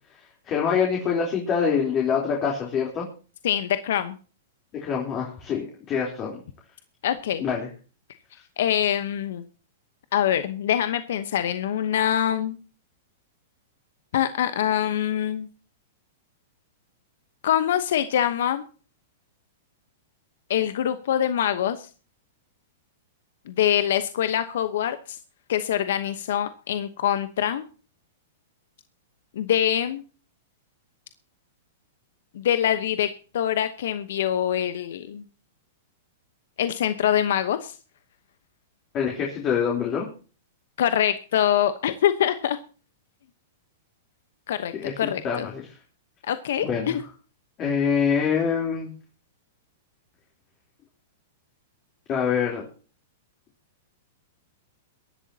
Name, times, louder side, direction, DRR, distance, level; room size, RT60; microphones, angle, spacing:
voice 1, 0.5-3.1 4.7-6.4 7.4-7.7 38.9-40.1 44.7-45.7 46.6-47.0 47.6-48.9 52.1-52.7, left 6 dB, 35° left, -1 dB, 3.6 m, -25 dB
voice 2, 3.4-4.1 7.0-7.4 8.6-9.4 10.1-12.6 14.1-15.5 17.4-18.6 20.5-21.9 23.5-25.2 25.5-27.6 29.4-30.0 32.3-33.1 33.3-35.2 36.6-37.7 40.8-42.6 44.5-45.5 46.3-47.0, left 10 dB, 70° left, 11 dB, 1.0 m, -24 dB
23.0 x 11.0 x 2.9 m, 0.37 s
hypercardioid pair, 120°, 0 cm